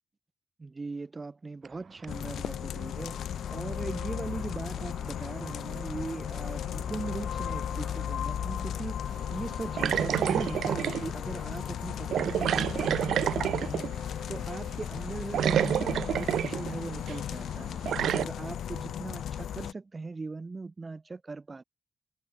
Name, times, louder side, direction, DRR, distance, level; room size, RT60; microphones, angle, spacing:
voice 1, 0.6-3.2 3.5-9.1 9.3-13.9 14.3-17.8 18.1-21.6, right 3 dB, 25° right, 2.1 m, -39 dB
sound 1, 1.6-19.6, right 6 dB, 45° right, 2.8 m, -53 dB
sound 2, 2.1-19.7, left 10 dB, 80° left, 0.3 m, -35 dB
sound 3, 9.8-11.1 12.1-14.0 15.0-15.1 15.3-16.7 17.1-17.2 17.9-18.2, right 10 dB, 80° right, 0.9 m, -28 dB
wide cardioid pair, 135°, 0 cm